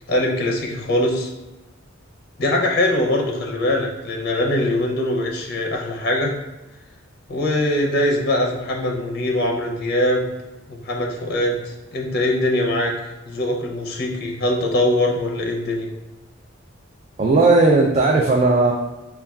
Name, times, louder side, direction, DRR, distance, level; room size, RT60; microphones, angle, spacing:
voice 1, 0.1-1.3 2.4-6.3 7.3-10.3 10.7-12.9 13.3-15.9, left 1 dB, 50° left, 0 dB, 0.6 m, -22 dB
voice 2, 17.2-18.7, right 3 dB, 35° right, 0 dB, 0.3 m, -16 dB
5.3 x 2.3 x 2.3 m, 1.1 s
head